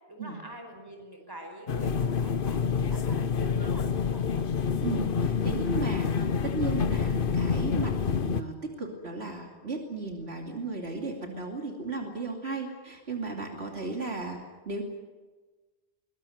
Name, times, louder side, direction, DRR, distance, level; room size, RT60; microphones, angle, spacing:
voice 1, 0.1-4.5, right 1 dB, 20° right, 4 dB, 5.1 m, -45 dB
sound 1, 1.7-8.4, left 6 dB, 55° left, 1.0 m, -27 dB
voice 2, 4.8-14.4 14.7-14.8, right 3 dB, 75° right, 2 dB, 3.0 m, -35 dB
22.0 x 20.5 x 9.3 m, 1.3 s
omnidirectional pair, 1.1 m